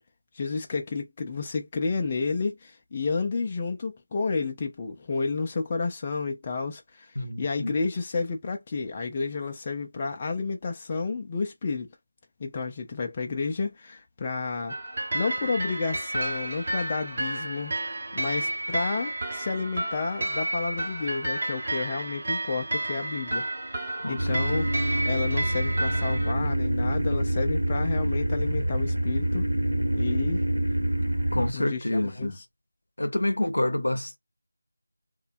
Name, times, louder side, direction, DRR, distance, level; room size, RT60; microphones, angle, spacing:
voice 1, 0.3-7.1 7.4-11.9 12.4-14.8 15.1-17.8 18.1-29.4 29.9-30.4 31.5-32.4, left 4 dB, 20° left, 0.3 m, -31 dB
voice 2, 7.2-7.7 24.0-24.7 31.3-32.4 33.0-34.2, left 1 dB, 85° left, 0.6 m, -28 dB
sound 1, 14.7-26.3, right 1 dB, 35° right, 0.8 m, -31 dB
sound 2, 24.2-31.5, right 1 dB, 85° right, 0.9 m, -26 dB
2.6 x 2.1 x 2.5 m
figure-of-eight pair, 175°, 0 cm